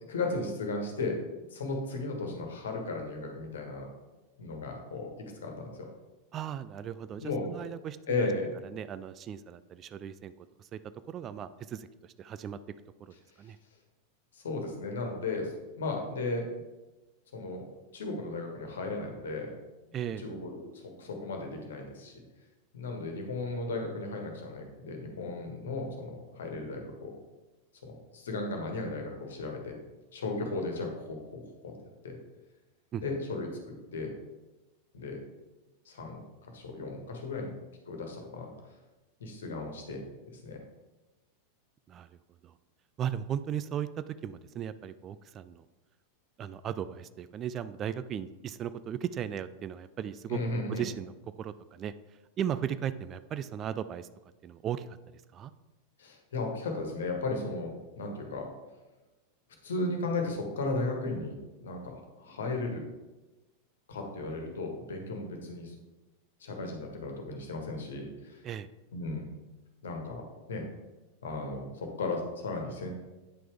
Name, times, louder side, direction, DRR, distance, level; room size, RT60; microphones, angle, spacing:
voice 1, 0.1-1.2 1.5-3.9 4.4-5.1 5.4-5.9 7.2-7.5 8.1-8.5 14.3-16.6 17.3-17.7 17.9-19.5 20.2-22.1 22.7-27.1 27.8-29.7 30.1-31.5 32.0-32.1 33.0-34.1 34.9-35.2 35.8-37.5 37.8-38.5 39.2-40.0 40.3-40.6 50.3-50.8 56.0-58.5 59.6-61.3 61.6-62.8 63.9-65.7 66.4-68.4 68.9-69.2 69.8-70.2 70.5-70.6 71.2-72.9, left 2 dB, 65° left, 3 dB, 1.5 m, -35 dB
voice 2, 6.3-8.3 8.6-10.8 11.1-12.6 13.0-13.6 19.9-20.3 32.9-33.0 41.9-42.2 42.4-42.5 43.0-45.7 46.4-51.9 52.4-54.1 54.4-55.5 68.4-68.7, right 9 dB, 30° right, 13 dB, 0.3 m, -37 dB
8.9 x 5.7 x 3.5 m, 1.1 s
figure-of-eight pair, 90°, 0 cm